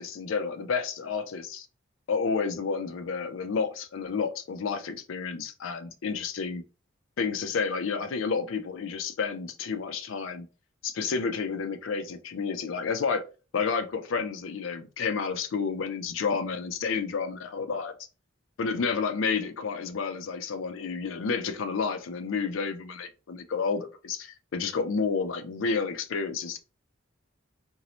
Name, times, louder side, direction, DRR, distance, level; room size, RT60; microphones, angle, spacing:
voice 1, 0.0-1.7 2.1-6.6 7.2-10.5 10.8-13.2 13.5-17.9 18.6-26.6, left 5 dB, 75° left, 0.4 m, -30 dB
2.6 x 2.0 x 2.9 m
head